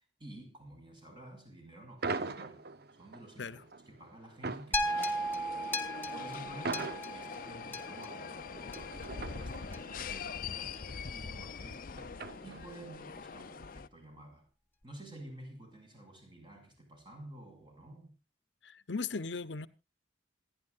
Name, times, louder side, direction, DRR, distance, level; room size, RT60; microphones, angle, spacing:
voice 1, 0.2-2.6 3.0-3.6 3.9-8.9 9.3-14.4 14.8-18.2, right 1 dB, 25° right, 6.3 m, -51 dB
sound 1, 2.0-12.9, right 3 dB, 60° right, 0.9 m, -43 dB
sound 2, 4.7-9.1 9.7-9.8, equal, 15° left, 2.2 m, -36 dB
sound 3, 4.8-13.9, left 5 dB, 50° left, 0.6 m, -43 dB
voice 2, 18.6-19.7, left 4 dB, 80° left, 0.9 m, -37 dB
27.5 x 10.5 x 2.5 m
head